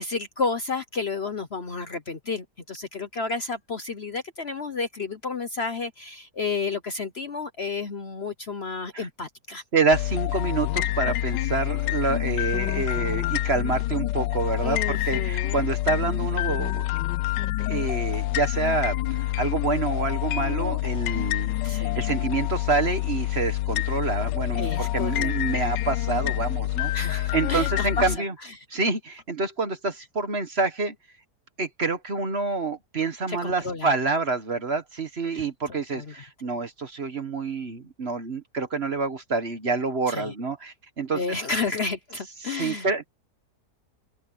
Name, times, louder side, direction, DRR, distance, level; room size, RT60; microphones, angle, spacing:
voice 1, 0.0-9.6 14.6-15.7 21.6-22.0 24.6-25.3 26.9-28.1 33.3-33.9 35.3-36.1 40.1-40.3 41.1-42.9, left 4 dB, 45° left, 1.0 m, -31 dB
voice 2, 9.7-16.8 17.7-26.9 27.3-28.3 28.7-30.9 31.6-41.2 42.4-43.1, right 4 dB, 40° right, 1.4 m, -27 dB
sound 1, 9.9-28.2, left 15 dB, 85° left, 1.2 m, -27 dB
omnidirectional pair, 1.8 m